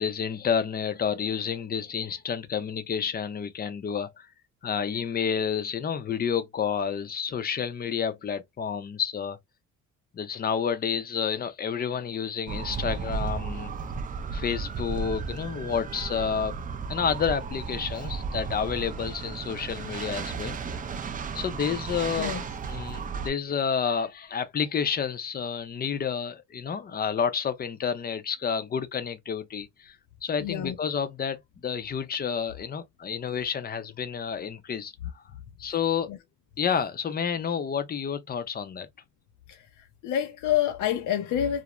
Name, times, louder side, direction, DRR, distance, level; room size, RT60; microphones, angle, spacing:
voice 1, 0.0-4.3 4.6-9.4 10.1-13.7 14.3-16.6 16.9-20.8 21.3-22.3 22.7-30.0 30.2-35.2 35.6-36.1 36.6-38.9, left 7 dB, 30° left, 0.5 m, -30 dB
sound 1, 12.5-23.3, right 5 dB, 30° right, 0.4 m, -34 dB
voice 2, 30.4-30.8 36.1-36.2 39.5-41.6, left 10 dB, 75° left, 0.6 m, -28 dB
2.5 x 2.1 x 3.0 m
cardioid pair, 120°, 30 cm